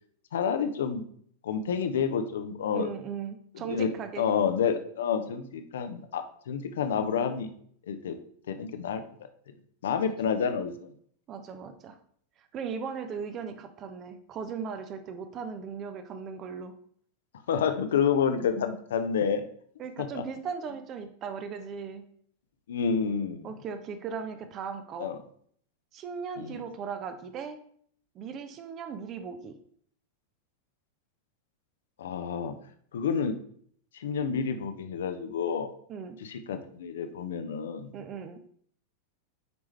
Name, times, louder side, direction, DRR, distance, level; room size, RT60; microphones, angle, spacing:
voice 1, 0.3-1.0 1.4-2.9 3.5-3.9 4.2-7.5 7.9-8.2 8.5-9.0 9.8-10.9 17.5-19.4 20.0-20.2 22.7-23.6 25.0-25.2 26.4-26.6 32.0-32.6 32.9-33.4 33.9-35.7 36.2-37.9, left 7 dB, 60° left, 8 dB, 0.8 m, -29 dB
voice 2, 2.7-4.3 10.0-10.1 11.3-12.0 12.4-16.7 19.8-22.1 23.4-25.1 25.9-27.6 28.1-29.6 35.9-36.2 37.9-38.4, right 6 dB, 30° right, 9 dB, 0.8 m, -38 dB
9.4 x 4.8 x 3.3 m, 0.62 s
figure-of-eight pair, 90°, 0 cm